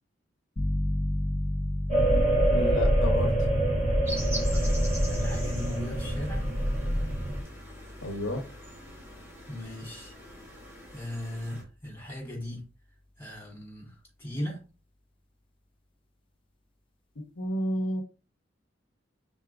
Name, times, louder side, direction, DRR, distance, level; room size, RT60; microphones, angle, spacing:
sound 1, 0.6-11.1, left 1 dB, 30° left, 0.5 m, -35 dB
sound 2, 1.9-7.4, right 1 dB, 35° right, 2.1 m, -25 dB
voice 1, 2.5-3.4 8.0-8.4 17.4-18.0, equal, 70° left, 0.8 m, -30 dB
sound 3, 4.1-11.6, right 1 dB, 15° right, 1.9 m, -43 dB
voice 2, 5.1-6.5 9.5-10.1 10.9-12.6 13.2-14.6, left 1 dB, 15° left, 2.7 m, -37 dB
4.9 x 3.9 x 2.4 m
head